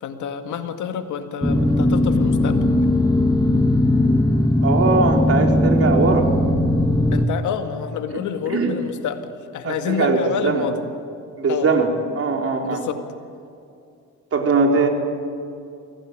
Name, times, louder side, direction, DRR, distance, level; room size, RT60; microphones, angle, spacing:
voice 1, 0.0-2.6 7.1-10.8 11.5-11.7 12.6-13.0, left 7 dB, 75° left, 7 dB, 2.1 m, -28 dB
sound 1, 1.4-7.2, left 1 dB, 10° left, 1.6 m, -18 dB
voice 2, 4.6-6.3 8.1-8.2 8.5-8.7 9.6-10.7 11.4-12.8 14.3-14.9, right 4 dB, 50° right, 2 dB, 4.3 m, -20 dB
25.5 x 16.5 x 9.1 m, 2.5 s
cardioid pair, 90°, 30 cm